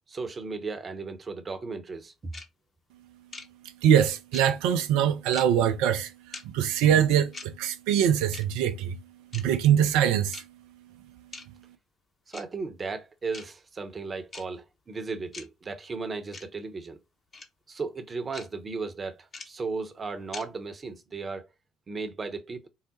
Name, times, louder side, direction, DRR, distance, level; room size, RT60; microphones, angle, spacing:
voice 1, 0.1-2.3 12.3-17.0 17.7-21.4 21.9-22.7, right 4 dB, 35° right, 0.9 m, -35 dB
sound 1, 2.3-2.4 3.3-3.4 4.3-4.4 5.3-5.4 6.3-6.4 7.3-7.5 8.3-8.4 9.3-9.4 10.3-10.4 11.3-11.4 12.3-12.4 13.3-13.4 14.3-14.4 15.3-15.4 16.3-16.4 17.3-17.4 18.3-18.4 19.3-19.4 20.3-20.4, left 3 dB, 35° left, 1.1 m, -40 dB
voice 2, 3.8-6.1 6.5-9.0 9.3-10.4, right 9 dB, 65° right, 0.5 m, -23 dB
4.7 x 2.1 x 4.1 m
figure-of-eight pair, 50°, 0 cm